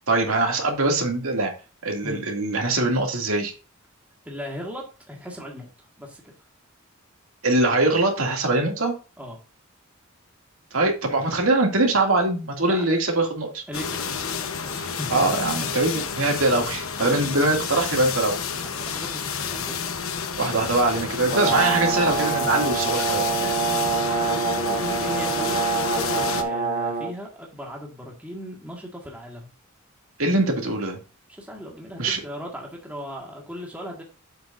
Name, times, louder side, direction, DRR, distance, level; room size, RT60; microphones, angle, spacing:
voice 1, 0.1-1.5 1.8-3.5 7.4-8.9 10.7-13.6 15.1-18.4 20.4-23.6 30.2-31.0 32.0-32.2, right 2 dB, 75° right, 1 dB, 2.5 m, -22 dB
voice 2, 4.3-5.7 6.0-6.2 9.2-9.4 12.7-12.9 13.7-15.7 16.5-16.7 17.0-17.5 18.6-20.1 23.1-25.6 26.1-29.5 31.4-34.0, equal, 5° right, -1 dB, 1.8 m, -38 dB
sound 1, 13.7-26.4, left 6 dB, 75° left, 1.0 m, -30 dB
Brass instrument, 21.3-27.1, right 4 dB, 45° right, 1.6 m, -25 dB
8.4 x 7.9 x 2.6 m, 0.33 s
head